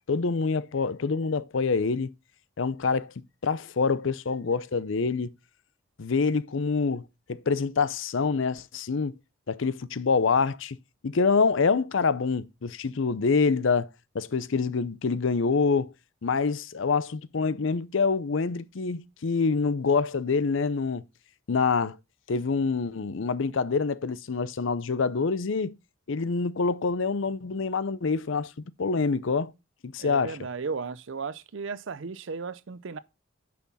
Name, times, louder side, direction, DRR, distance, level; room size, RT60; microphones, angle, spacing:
voice 1, 0.1-2.1 2.6-3.1 3.4-5.3 6.0-9.1 9.5-10.8 11.0-13.9 14.1-15.9 16.2-21.0 21.5-22.0 22.3-25.7 26.1-28.5 28.8-29.5 29.8-30.4, left 4 dB, 65° left, 0.5 m, -26 dB
voice 2, 30.0-33.0, right 4 dB, 60° right, 0.5 m, -35 dB
10.0 x 6.0 x 4.1 m
head